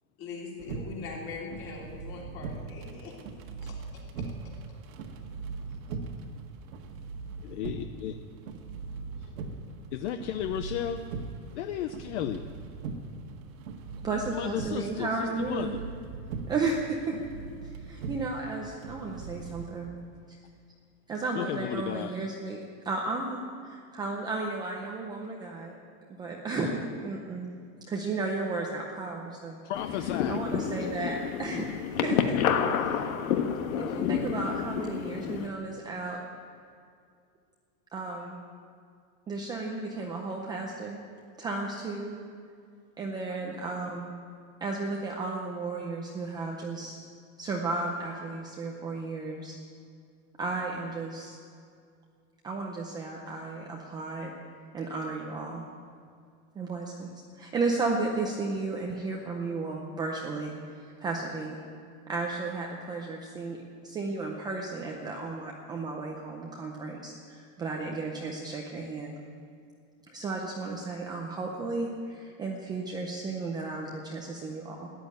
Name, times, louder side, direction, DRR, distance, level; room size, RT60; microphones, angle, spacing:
voice 1, 0.2-3.1 3.6-3.7, left 4 dB, 30° left, -2 dB, 3.1 m, -41 dB
sound 1, 0.6-19.6, right 4 dB, 70° right, 1.8 m, -40 dB
voice 2, 7.5-8.2 9.9-11.0 11.6-12.4 14.1-15.8 21.4-22.1 29.6-30.4, left 10 dB, 55° left, 8 dB, 0.7 m, -34 dB
voice 3, 14.0-15.7 16.5-17.2 17.6-19.9 20.3-20.4 21.1-25.7 26.2-27.5 27.9-29.6 30.3-31.7 32.0-32.4 32.7-33.1 33.8-36.2 37.9-38.4 39.3-41.0 41.4-42.2 43.0-44.1 44.6-47.0 47.4-49.5 50.4-51.3 52.4-54.3 54.7-55.6 56.5-60.5 60.8-61.6 62.1-63.6 63.8-69.2 70.1-74.9, right 3 dB, 10° right, -1 dB, 0.5 m, -34 dB
sound 2, 29.7-35.5, left 8 dB, 80° left, 1.5 m, -29 dB
14.0 x 10.5 x 9.2 m, 2.3 s
supercardioid pair, 175°, 42 cm